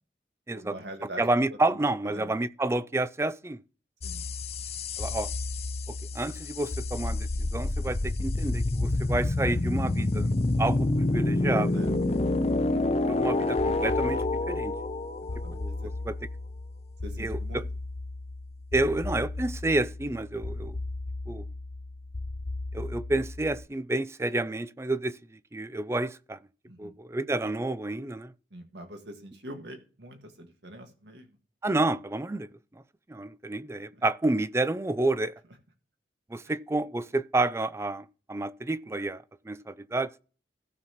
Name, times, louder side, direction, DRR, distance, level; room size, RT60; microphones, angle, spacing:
voice 1, 0.5-1.2 1.5-1.6 2.0-2.3 4.0-4.3 11.7-11.9 13.0-13.5 15.2-15.6 17.0-17.7 26.7-26.9 28.5-31.4, right 1 dB, 75° right, 1.7 m, -44 dB
voice 2, 1.2-3.6 5.0-5.3 5.9-10.3 10.6-11.8 13.1-14.8 15.5-16.2 17.2-17.7 18.7-20.8 21.3-21.5 22.7-26.4 26.8-28.3 31.6-32.5 33.1-35.4 36.3-40.2, right 2 dB, 15° right, 0.4 m, -30 dB
sound 1, 4.0-23.7, left 2 dB, 35° left, 0.6 m, -30 dB
16.5 x 5.6 x 3.0 m
head